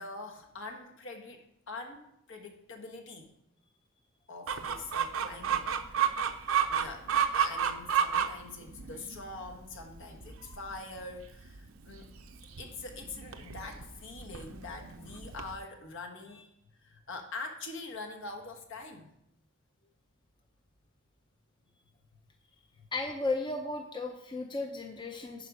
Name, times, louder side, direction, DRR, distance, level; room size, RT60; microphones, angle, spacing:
voice 1, 0.0-3.3 4.3-5.7 6.4-12.1 12.6-16.5 16.8-19.1 22.8-22.9, left 3 dB, 65° left, 3 dB, 1.3 m, -44 dB
Chicken rooster, 4.5-15.6, right 8 dB, 70° right, 0.6 m, -32 dB
voice 2, 22.9-25.5, left 3 dB, 20° left, 3 dB, 0.6 m, -34 dB
10.5 x 5.1 x 4.8 m, 0.79 s
head